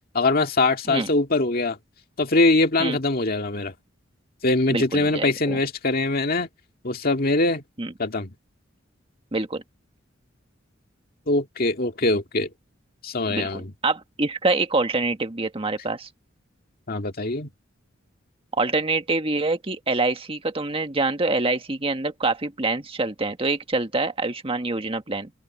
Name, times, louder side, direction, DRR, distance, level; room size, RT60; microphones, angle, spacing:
voice 1, 0.1-1.8 2.2-3.7 4.4-6.5 6.8-7.6 8.0-8.3 11.3-12.5 13.0-13.7 16.9-17.5, left 2 dB, 50° left, 2.0 m, -22 dB
voice 2, 4.7-5.6 7.8-7.9 9.3-9.6 13.3-16.1 18.5-25.3, right 3 dB, 30° right, 1.5 m, -25 dB
open air
head